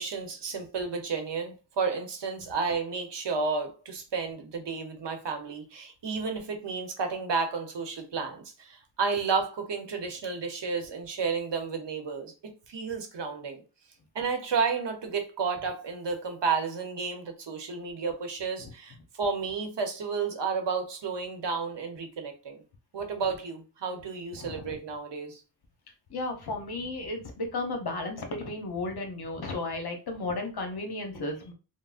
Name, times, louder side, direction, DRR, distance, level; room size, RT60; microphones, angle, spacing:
voice 1, 0.0-13.6 14.1-22.6 22.9-25.4, right 5 dB, 65° right, 0.8 m, -32 dB
voice 2, 24.3-24.7 26.1-31.5, left 2 dB, 55° left, 0.8 m, -34 dB
3.6 x 2.0 x 2.4 m
wide cardioid pair, 80°, 46 cm